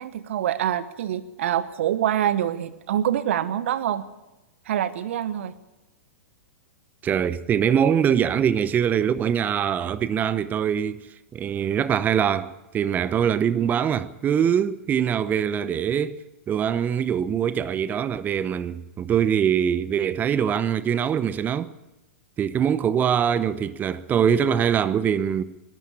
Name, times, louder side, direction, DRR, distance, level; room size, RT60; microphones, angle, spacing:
voice 1, 0.0-4.0 4.7-5.5, right 11 dB, 65° right, 1.1 m, -25 dB
voice 2, 7.0-11.1 11.3-21.7 22.4-25.4, right 8 dB, 25° right, 0.8 m, -23 dB
21.0 x 12.5 x 9.9 m
hypercardioid pair, 110°, 8 cm